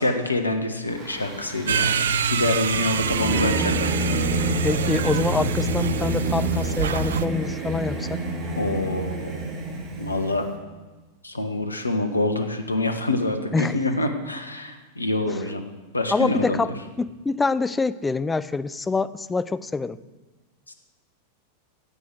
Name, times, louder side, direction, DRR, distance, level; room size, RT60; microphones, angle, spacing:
voice 1, 0.0-4.1 8.6-9.4 10.0-10.5 11.2-15.6 15.9-16.6 20.7-20.8, left 2 dB, 80° left, 7 dB, 1.3 m, -26 dB
Singing / Musical instrument, 0.9-10.5, right 2 dB, 30° right, 2.4 m, -28 dB
sound 1, 1.7-7.3, right 6 dB, 65° right, 0.5 m, -26 dB
voice 2, 4.6-8.2 13.5-13.7 15.3-15.4 16.1-20.0, left 3 dB, 10° left, 15 dB, 0.4 m, -26 dB
11.0 x 8.3 x 7.9 m, 1.2 s
figure-of-eight pair, 90°, 0 cm